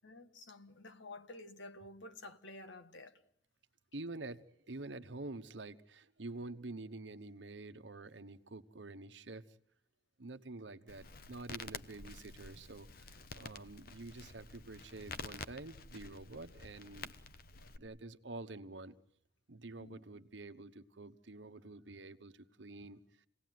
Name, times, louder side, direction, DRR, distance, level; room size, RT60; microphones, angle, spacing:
voice 1, 0.0-3.2 17.6-17.7 19.8-20.0, left 2 dB, 90° left, 1.7 m, -51 dB
voice 2, 3.9-9.4 10.2-17.1 17.8-18.9 19.5-23.3, right 2 dB, 85° right, 1.1 m, -48 dB
Crackle, 10.9-17.8, left 4 dB, 55° left, 1.0 m, -49 dB
28.5 x 18.0 x 9.4 m
head